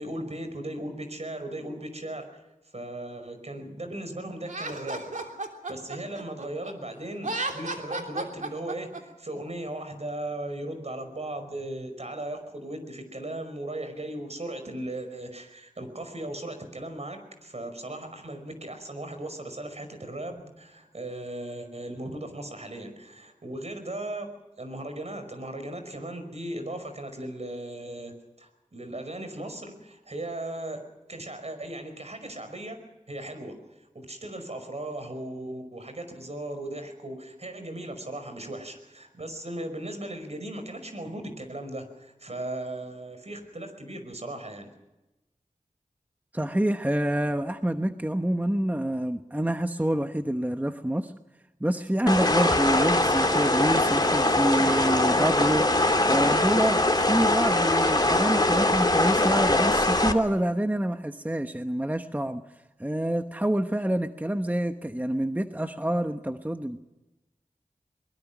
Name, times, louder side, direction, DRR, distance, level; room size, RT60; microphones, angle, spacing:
voice 1, 0.0-2.3 2.7-5.0 5.7-24.3 24.6-32.8 33.1-33.6 33.9-44.7, right 1 dB, 55° right, 7 dB, 5.3 m, -37 dB
Laughter, 4.4-6.7 7.1-9.0, right 2 dB, 70° right, 3.2 m, -33 dB
voice 2, 46.3-51.1 51.6-62.4 62.8-66.8, right 1 dB, 10° right, 7 dB, 1.1 m, -27 dB
sound 1, 52.1-60.1, left 2 dB, 30° left, 2.5 m, -22 dB
22.5 x 21.5 x 6.1 m, 1.0 s
wide cardioid pair, 45°, 14 cm